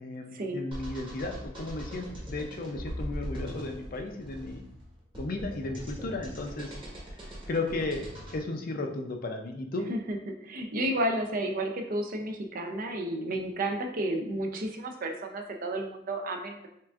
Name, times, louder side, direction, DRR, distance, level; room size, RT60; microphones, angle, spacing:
voice 1, 0.0-4.6 5.2-6.7 7.5-9.9, left 2 dB, 50° left, 4 dB, 0.5 m, -34 dB
sound 1, 0.7-8.4, equal, 25° right, 1.2 m, -40 dB
voice 2, 9.9-16.7, right 1 dB, 45° right, 3 dB, 0.5 m, -32 dB
5.7 x 2.5 x 2.4 m, 0.72 s
head